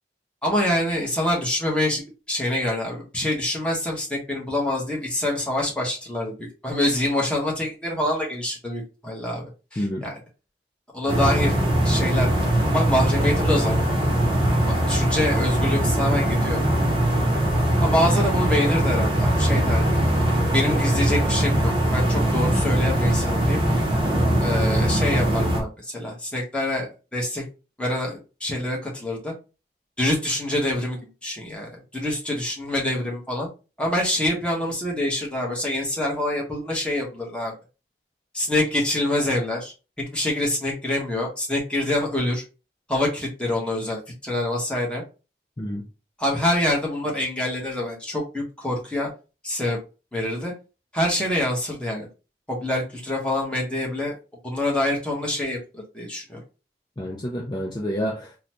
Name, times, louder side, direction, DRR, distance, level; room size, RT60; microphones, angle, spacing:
voice 1, 0.4-2.0 2.3-10.2 10.9-11.5 11.8-12.3 12.7-13.9 14.5-16.6 17.8-19.8 20.5-23.6 24.4-27.4 27.8-29.3 30.0-33.5 33.8-37.5 38.3-39.7 40.1-42.4 42.9-45.0 46.2-49.1 49.4-49.8 50.1-50.5 50.9-52.1 52.5-54.1 54.4-56.4, left 1 dB, 5° left, 1.0 m, -26 dB
voice 2, 9.8-10.1 17.9-18.0 45.6-45.9 57.0-58.4, equal, 25° left, 0.5 m, -29 dB
sound 1, 11.1-25.6, right 1 dB, 30° right, 0.7 m, -21 dB
3.8 x 2.1 x 2.9 m
head